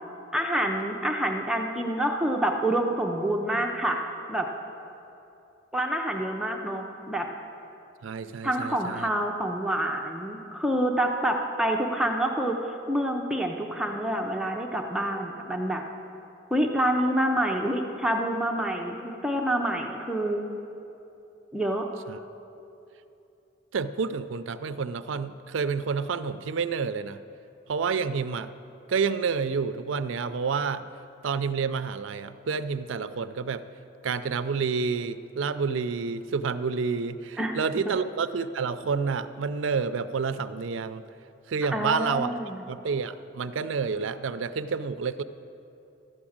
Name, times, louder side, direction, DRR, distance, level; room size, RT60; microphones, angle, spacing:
voice 1, 0.3-4.0 4.3-4.5 5.7-7.3 8.4-15.8 16.5-20.5 21.5-21.9 37.4-37.6 37.9-38.0 41.7-42.6, right 1 dB, 5° right, 1 dB, 0.6 m, -27 dB
voice 2, 8.0-9.1 22.1-22.2 23.7-27.2 27.7-28.5 28.9-30.8 31.2-33.6 34.0-41.1 41.5-45.2, right 5 dB, 75° right, 12 dB, 0.4 m, -29 dB
12.5 x 6.1 x 8.6 m, 2.8 s
head